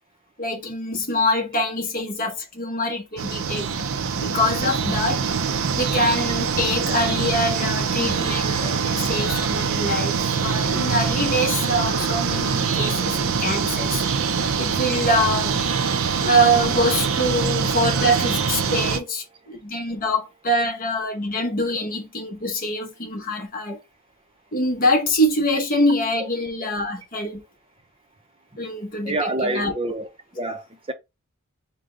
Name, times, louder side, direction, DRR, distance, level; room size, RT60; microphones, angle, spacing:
voice 1, 0.4-3.9 4.2-5.4 5.7-14.0 14.6-15.6 16.2-23.8 24.5-27.4 28.6-29.7, equal, 40° left, 1.0 m, -24 dB
sound 1, 3.2-19.0, right 6 dB, 65° right, 0.5 m, -24 dB
voice 2, 29.0-30.1 30.3-30.9, right 2 dB, 25° right, 0.6 m, -27 dB
4.9 x 2.2 x 3.8 m
head